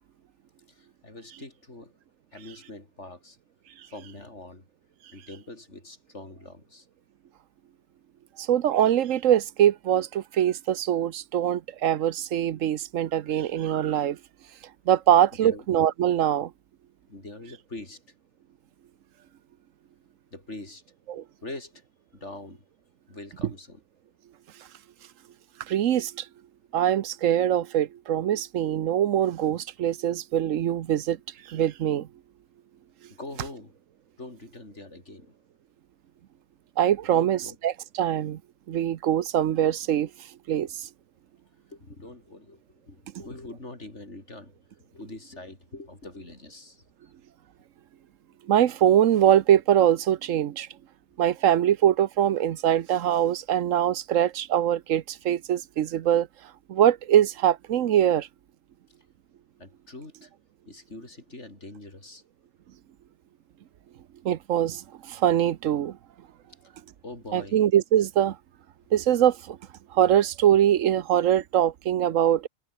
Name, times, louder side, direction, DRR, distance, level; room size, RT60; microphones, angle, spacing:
voice 1, 0.7-1.9 2.3-3.4 3.9-4.7 5.1-6.9 15.4-15.7 17.1-18.0 20.3-20.8 21.4-21.8 22.1-22.6 23.1-23.8 33.2-33.8 34.2-35.4 37.1-37.6 40.5-40.7 41.7-47.1 59.6-60.3 60.7-62.2 66.6-66.8 67.0-67.6, left 2 dB, 60° left, 5.2 m, -43 dB
voice 2, 8.4-14.2 14.9-16.5 21.1-21.2 25.7-26.3 26.7-31.2 31.4-32.1 36.8-38.4 38.7-40.1 40.5-40.7 48.5-50.7 51.2-56.3 56.7-58.3 64.2-66.0 67.3-68.4 68.9-69.6 69.9-72.5, right 10 dB, 75° right, 1.1 m, -23 dB
omnidirectional pair, 1.4 m